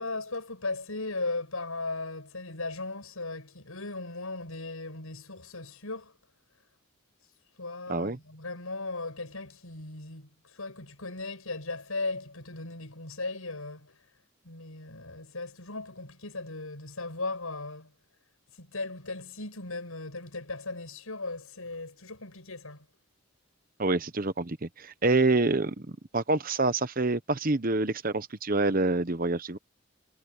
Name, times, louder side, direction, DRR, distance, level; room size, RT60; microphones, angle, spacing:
voice 1, 0.0-6.1 7.6-13.9 14.4-17.9 18.6-22.8, left 3 dB, 85° left, 6.3 m, -37 dB
voice 2, 23.8-25.9 26.1-29.6, right 2 dB, 40° right, 1.0 m, -26 dB
head